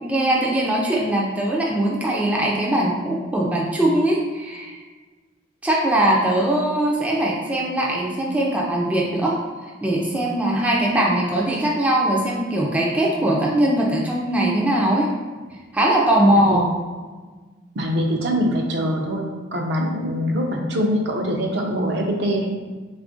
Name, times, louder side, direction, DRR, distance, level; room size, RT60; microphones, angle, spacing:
voice 1, 0.0-4.8 5.6-15.1 15.7-16.7, right 1 dB, 5° right, -3 dB, 0.4 m, -21 dB
voice 2, 17.8-19.2 19.5-22.5, equal, 60° right, 1 dB, 0.5 m, -23 dB
3.4 x 2.4 x 3.6 m, 1.4 s
head